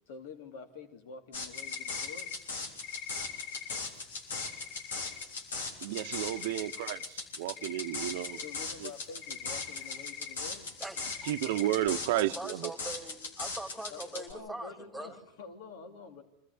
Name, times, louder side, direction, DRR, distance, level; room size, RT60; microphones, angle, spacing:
voice 1, 0.1-2.3 8.4-10.7 13.9-16.2, left 5 dB, 75° left, 2.9 m, -47 dB
sound 1, 1.3-14.3, left 3 dB, 90° left, 3.6 m, -39 dB
sound 2, 1.5-2.4 2.8-5.3 5.6-7.1 7.3-11.9, left 9 dB, 55° left, 1.6 m, -44 dB
voice 2, 5.8-8.4 8.8-8.9 11.2-12.7, right 15 dB, 70° right, 0.8 m, -32 dB
voice 3, 10.8-11.3 12.1-15.2, right 2 dB, 5° right, 2.2 m, -42 dB
25.0 x 14.5 x 9.6 m
hypercardioid pair, 110°, 0 cm